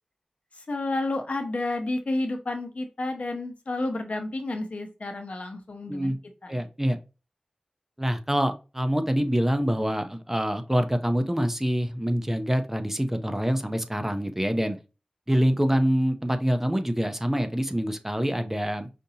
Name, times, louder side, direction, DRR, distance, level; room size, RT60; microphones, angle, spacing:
voice 1, 0.5-6.2 6.4-6.7, left 2 dB, 70° left, 5 dB, 0.9 m, -31 dB
voice 2, 6.5-7.0 8.0-14.8 15.3-18.9, equal, 15° right, 8 dB, 0.6 m, -25 dB
5.1 x 2.6 x 2.8 m, 0.31 s
wide cardioid pair, 55°, 2 cm